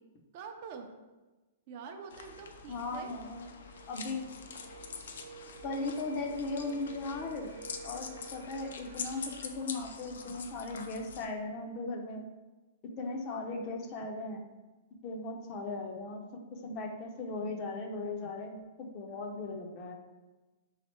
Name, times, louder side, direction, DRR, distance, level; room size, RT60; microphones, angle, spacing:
voice 1, 0.3-0.9 1.7-3.2, right 6 dB, 40° right, 4 dB, 0.5 m, -45 dB
sound 1, 2.1-11.3, left 5 dB, 80° left, 0.5 m, -45 dB
sound 2, 2.1-9.4, right 5 dB, 90° right, 0.8 m, -52 dB
voice 2, 2.7-3.5 3.9-4.3 5.6-7.5 7.8-12.2 13.0-14.4 15.0-16.2 16.5-19.9, left 3 dB, 30° left, 3 dB, 0.5 m, -37 dB
3.6 x 3.2 x 4.3 m, 1.2 s
hypercardioid pair, 165°, 0 cm